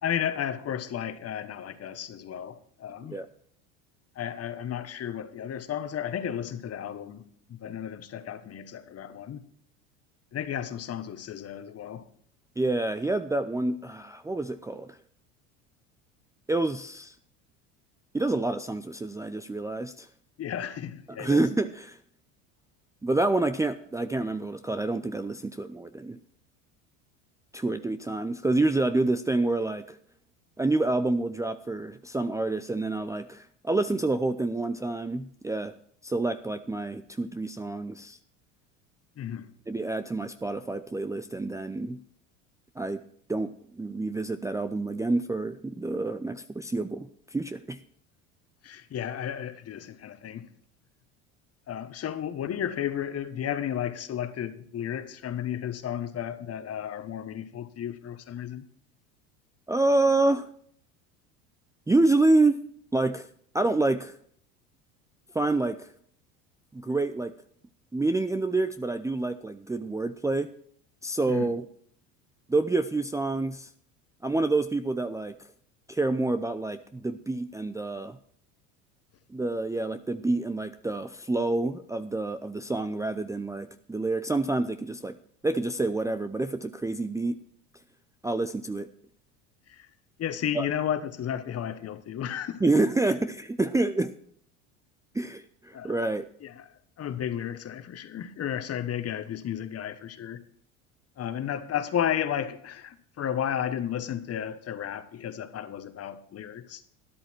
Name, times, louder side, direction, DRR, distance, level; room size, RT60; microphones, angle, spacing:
voice 1, 0.0-3.2 4.1-9.4 10.3-12.1 20.4-21.4 39.2-39.5 48.6-50.5 51.7-58.6 71.3-71.5 89.7-89.9 90.2-92.8 95.7-96.0 96.4-100.4 101.2-106.8, left 9 dB, 40° left, 1.5 m, -33 dB
voice 2, 12.6-14.9 16.5-17.1 18.1-20.1 21.1-22.0 23.0-26.2 27.5-30.0 30.6-35.7 36.0-38.2 39.7-42.0 42.8-43.0 43.3-47.8 59.7-60.5 61.9-62.6 62.9-63.3 63.5-64.2 65.3-65.9 66.7-67.3 67.9-70.5 71.0-71.7 72.5-73.7 74.2-75.3 75.9-78.2 79.3-85.2 85.4-87.4 88.2-88.9 90.5-90.7 92.6-94.1 95.1-96.2, right 2 dB, 10° right, 0.6 m, -27 dB
12.5 x 11.0 x 4.6 m
hypercardioid pair, 85°, 38 cm